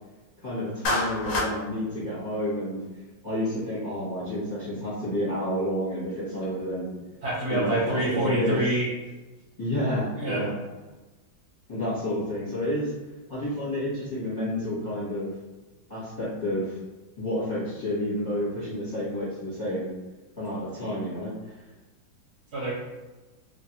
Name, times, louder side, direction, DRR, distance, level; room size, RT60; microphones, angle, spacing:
voice 1, 0.4-2.8 3.2-6.9 7.5-8.6 9.6-10.5 11.7-12.9 13.3-15.3 15.9-16.8 17.2-19.9 20.4-21.3, left 1 dB, 30° left, -10 dB, 0.8 m, -30 dB
Clapping, 0.8-1.5, left 1 dB, 70° left, 0.8 m, -26 dB
voice 2, 7.2-8.9 10.1-10.4 22.5-22.7, right 1 dB, 60° right, -7 dB, 1.1 m, -26 dB
3.0 x 2.5 x 2.9 m, 1.1 s
omnidirectional pair, 2.2 m